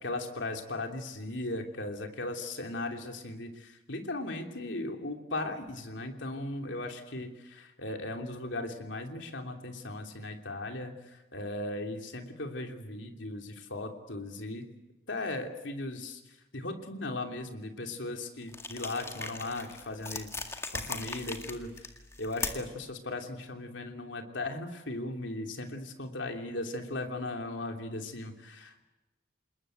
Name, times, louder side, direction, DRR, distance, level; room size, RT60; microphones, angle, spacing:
voice 1, 0.0-14.6 15.1-16.2 16.5-20.3 20.7-21.7 22.2-28.8, left 2 dB, 75° left, 4 dB, 3.0 m, -37 dB
sound 1, 18.5-22.8, left 3 dB, 15° left, 1.9 m, -39 dB
27.5 x 20.5 x 8.0 m, 1.0 s
head